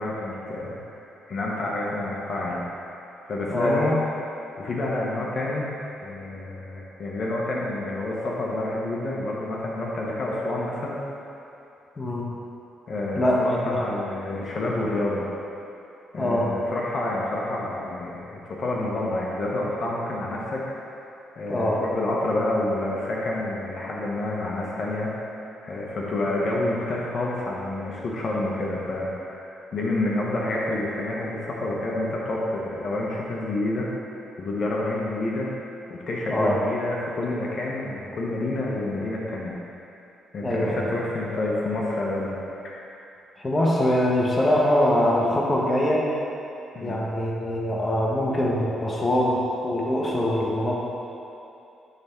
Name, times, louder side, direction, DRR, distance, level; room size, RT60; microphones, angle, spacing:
voice 1, 0.0-2.6 3.2-4.0 4.6-11.0 12.9-15.3 16.1-20.6 21.4-25.1 25.6-33.9 34.4-35.5 35.9-39.6 40.3-42.4 42.6-42.8 46.7-47.0, left 2 dB, 50° left, -3 dB, 1.0 m, -28 dB
voice 2, 3.5-3.8 12.0-12.3 13.2-13.7 16.2-16.5 21.5-21.8 36.3-36.6 40.4-40.8 43.4-46.1 46.8-50.8, left 1 dB, 25° left, -3 dB, 1.1 m, -23 dB
10.0 x 3.6 x 4.4 m, 2.7 s
cardioid pair, 90°, 0 cm